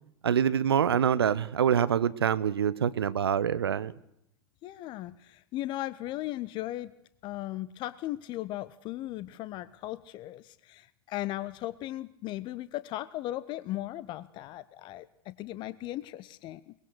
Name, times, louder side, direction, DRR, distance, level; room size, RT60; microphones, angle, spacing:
voice 1, 0.2-3.9, right 8 dB, 70° right, 16 dB, 1.0 m, -25 dB
voice 2, 4.6-6.9 7.2-16.7, left 15 dB, 35° left, 16 dB, 0.8 m, -37 dB
23.0 x 20.5 x 6.5 m, 0.79 s
figure-of-eight pair, 90°, 13 cm